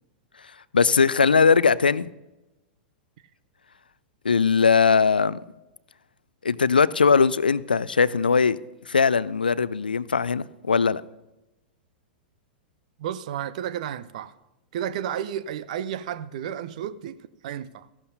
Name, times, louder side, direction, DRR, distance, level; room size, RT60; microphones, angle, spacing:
voice 1, 0.7-2.1 4.2-5.4 6.4-8.6 8.9-11.0, left 5 dB, 80° left, 0.4 m, -20 dB
voice 2, 13.0-14.3 14.7-17.9, right 10 dB, 55° right, 0.5 m, -32 dB
15.5 x 12.0 x 2.7 m
figure-of-eight pair, 100°, 5 cm